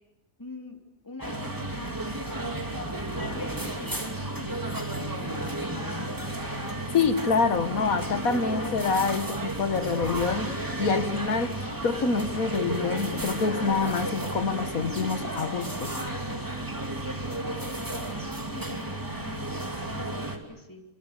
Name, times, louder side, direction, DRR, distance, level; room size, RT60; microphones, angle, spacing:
voice 1, 0.4-0.8 1.0-6.0 15.9-16.5 17.1-17.3 18.0-20.8, left 2 dB, 15° left, 3.6 m, -45 dB
sound 1, 1.2-20.4, right 1 dB, 15° right, 2.8 m, -33 dB
voice 2, 6.9-15.9, left 4 dB, 80° left, 2.0 m, -26 dB
28.0 x 26.5 x 6.6 m
omnidirectional pair, 1.5 m